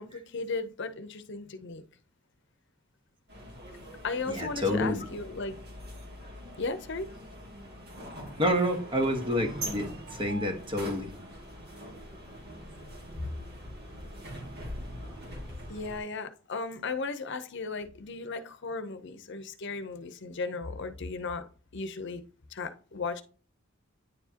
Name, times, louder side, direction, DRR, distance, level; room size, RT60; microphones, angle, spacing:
voice 1, 0.0-1.8 4.0-5.6 6.6-7.1 15.7-21.4 21.7-22.2 22.5-23.2, left 4 dB, 65° left, 0.8 m, -35 dB
sound 1, 3.3-16.0, equal, 55° right, 2.4 m, -43 dB
voice 2, 4.3-5.0 8.4-11.1, equal, 25° right, 1.4 m, -28 dB
9.7 x 4.7 x 2.9 m
head